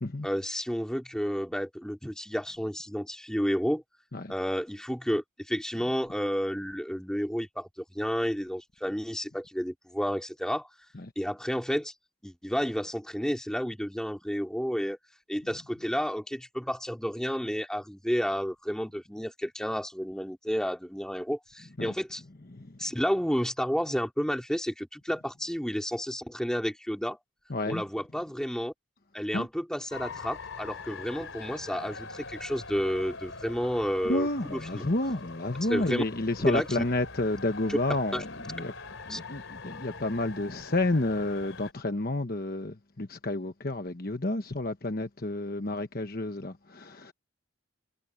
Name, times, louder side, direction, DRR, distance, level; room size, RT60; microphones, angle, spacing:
voice 1, 0.2-3.8 4.3-10.7 11.1-11.9 12.2-15.0 15.3-22.2 22.8-27.2 27.7-28.7 29.1-34.8 35.7-36.0 36.5-36.8 37.7-37.8 38.1-38.2 39.1-39.2, equal, 5° left, 3.2 m, -31 dB
voice 2, 27.5-27.8 29.3-29.5 34.1-38.7 39.1-47.1, left 2 dB, 45° left, 1.2 m, -30 dB
sound 1, 29.9-41.7, left 3 dB, 75° left, 3.4 m, -43 dB
head